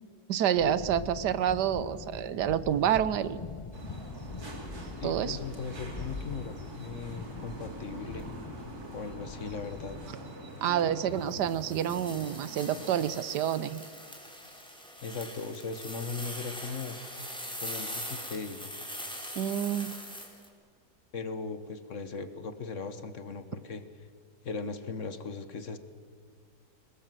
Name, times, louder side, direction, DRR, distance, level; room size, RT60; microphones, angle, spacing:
voice 1, 0.3-3.4 5.0-5.4 10.6-13.8 19.4-19.9, right 10 dB, 85° right, 16 dB, 1.4 m, -28 dB
sound 1, 0.6-10.1, left 3 dB, 30° left, 0.6 m, -43 dB
sound 2, 3.7-13.0, right 1 dB, 65° right, 3.6 m, -45 dB
voice 2, 5.0-8.3 8.9-10.0 15.0-17.0 17.6-18.7 21.1-23.8 24.4-25.8, left 4 dB, 50° left, 11 dB, 1.5 m, -38 dB
sound 3, 11.3-20.5, equal, 5° left, 3.6 m, -42 dB
21.5 x 19.5 x 7.7 m, 2.2 s
omnidirectional pair, 1.8 m